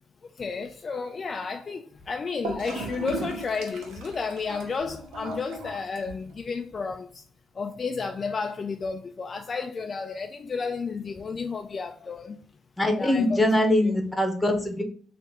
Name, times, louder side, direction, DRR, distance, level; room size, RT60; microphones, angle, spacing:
voice 1, 0.4-7.2 7.6-12.4 13.0-13.4 13.8-13.9, left 4 dB, 40° left, 0.3 m, -32 dB
Gurgling / Toilet flush, 2.4-6.4, right 2 dB, 90° right, 0.8 m, -37 dB
voice 2, 12.8-14.8, left 1 dB, 10° left, 1.0 m, -23 dB
4.0 x 2.5 x 3.6 m
cardioid pair, 90°, 0 cm